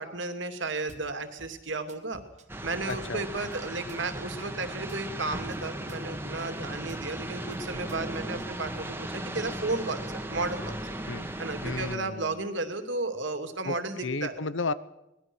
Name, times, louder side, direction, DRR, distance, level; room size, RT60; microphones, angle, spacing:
voice 1, 0.0-2.2 2.6-10.9 11.4-14.4, right 3 dB, 65° right, 8 dB, 2.7 m, -33 dB
Drum kit / Bass drum, 0.9-1.1 1.4-3.0 3.4-5.0 5.4-7.0 7.5-8.8, right 1 dB, 35° right, 2.1 m, -52 dB
sound 1, 2.5-12.0, right 1 dB, 10° right, 1.9 m, -37 dB
voice 2, 2.9-3.5 11.1-11.3 11.6-12.4 13.6-13.7 14.0-14.7, left 3 dB, 70° left, 16 dB, 1.1 m, -33 dB
24.5 x 20.0 x 6.3 m, 0.93 s
head